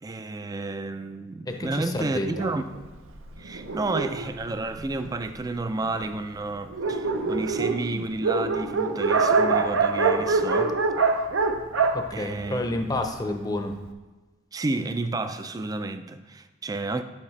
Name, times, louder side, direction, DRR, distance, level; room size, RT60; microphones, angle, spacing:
voice 1, 0.0-2.7 3.4-10.8 12.1-12.6 14.5-17.0, right 2 dB, 20° right, 0.3 m, -31 dB
voice 2, 1.5-2.3 11.9-13.8, left 1 dB, 20° left, 0.6 m, -29 dB
Dog, 2.3-5.3 6.0-6.1 6.4-6.5 6.7-13.1, right 4 dB, 80° right, 0.7 m, -25 dB
8.9 x 7.2 x 3.2 m
head